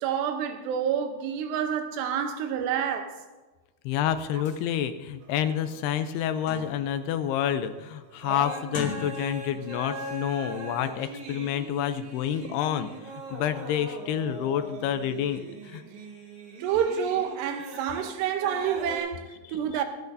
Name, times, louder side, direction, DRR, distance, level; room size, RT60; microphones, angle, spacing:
voice 1, 0.0-3.2 16.6-19.8, right 8 dB, 85° right, 3.0 m, -28 dB
voice 2, 3.9-12.9 13.3-15.8 19.7-19.8, left 10 dB, 80° left, 2.5 m, -28 dB
sound 1, 4.5-4.6 5.2-5.3 5.7-7.0 7.4-7.8 8.6-9.6 9.9-10.2, left 3 dB, 40° left, 1.4 m, -40 dB
sound 2, 5.2-6.8 7.6-7.8 8.1-19.0, right 2 dB, 55° right, 2.5 m, -40 dB
26.0 x 8.9 x 2.7 m
omnidirectional pair, 4.9 m